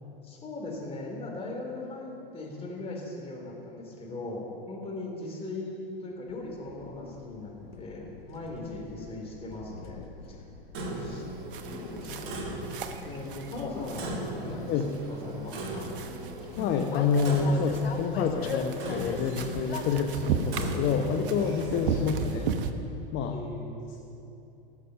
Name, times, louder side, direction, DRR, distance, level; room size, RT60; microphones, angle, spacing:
voice 1, 0.2-10.0 10.3-10.4 11.0-11.3 11.7-12.7 13.0-14.1 14.4-15.9 23.3-23.7, left 2 dB, 20° left, -2 dB, 3.6 m, -39 dB
Train, 6.3-20.1, left 4 dB, 85° left, 1.2 m, -42 dB
Clock, 10.7-22.1, right 2 dB, 45° right, 2.5 m, -39 dB
sound 1, 11.5-22.7, right 6 dB, 65° right, 1.1 m, -36 dB
voice 2, 16.6-22.5 23.1-23.4, left 5 dB, 40° left, 4 dB, 1.0 m, -28 dB
19.0 x 6.6 x 5.8 m, 2.8 s
hypercardioid pair, 100°, 29 cm